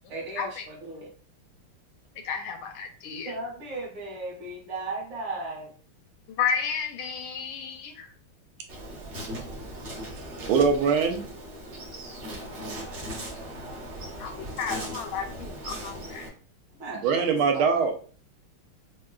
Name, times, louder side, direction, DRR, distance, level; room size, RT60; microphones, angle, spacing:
voice 1, 0.1-1.1 3.2-5.7 16.7-17.7, right 2 dB, 60° right, 2.0 m, -36 dB
voice 2, 2.2-3.3 6.3-8.1 14.2-16.3, left 6 dB, 75° left, 1.3 m, -32 dB
Insect, 8.7-16.3, right 1 dB, 45° right, 1.0 m, -38 dB
voice 3, 10.5-11.2 17.0-17.9, right 5 dB, 80° right, 1.5 m, -22 dB
6.0 x 2.2 x 2.3 m
omnidirectional pair, 2.4 m